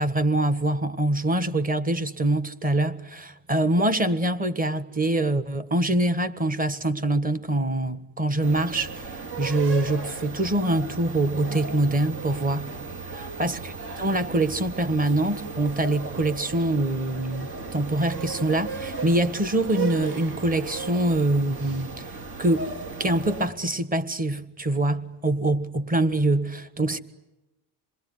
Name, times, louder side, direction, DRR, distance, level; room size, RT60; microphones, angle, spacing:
voice 1, 0.0-12.7 13.4-13.6 14.0-22.6 23.0-27.0, right 1 dB, 20° right, 1.6 m, -24 dB
sound 1, 8.4-23.5, right 4 dB, 65° right, 4.6 m, -36 dB
28.0 x 21.5 x 9.5 m
cardioid pair, 130°, 43 cm